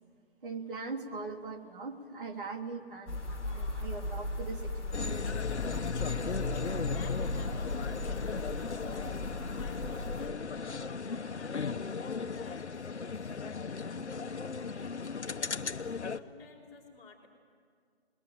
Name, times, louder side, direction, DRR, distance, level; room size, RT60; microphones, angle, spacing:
voice 1, 0.4-5.9, right 4 dB, 50° right, 3 dB, 3.0 m, -41 dB
sound 1, 3.1-10.3, left 2 dB, 5° left, 2.1 m, -37 dB
sound 2, 4.9-16.2, left 5 dB, 75° left, 1.2 m, -36 dB
voice 2, 6.8-9.3 9.5-17.3, left 4 dB, 25° left, -1 dB, 4.5 m, -55 dB
28.0 x 21.0 x 9.2 m, 2.1 s
figure-of-eight pair, 165°, 34 cm